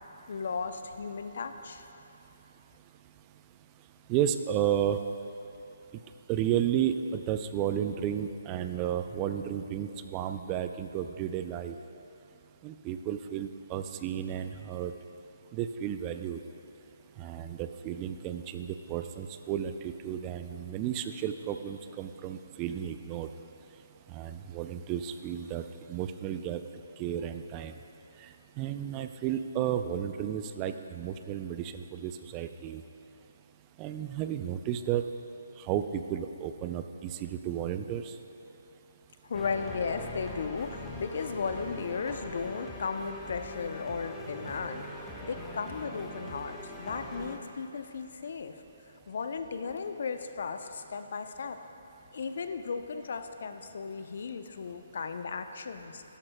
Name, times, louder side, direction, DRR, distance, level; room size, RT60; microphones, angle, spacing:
voice 1, 0.3-1.8 39.2-48.6 49.1-51.6 52.1-56.0, left 5 dB, 60° left, 8 dB, 0.6 m, -36 dB
voice 2, 4.1-5.0 6.3-11.7 12.6-14.9 15.5-16.4 17.2-23.3 24.1-26.6 27.0-27.7 28.6-32.8 33.8-35.0 35.7-38.1, right 10 dB, 25° right, 8 dB, 0.3 m, -32 dB
sound 1, 39.3-47.4, left 1 dB, 10° left, 0.8 m, -42 dB
12.5 x 12.0 x 2.2 m, 2.9 s
figure-of-eight pair, 140°, 0 cm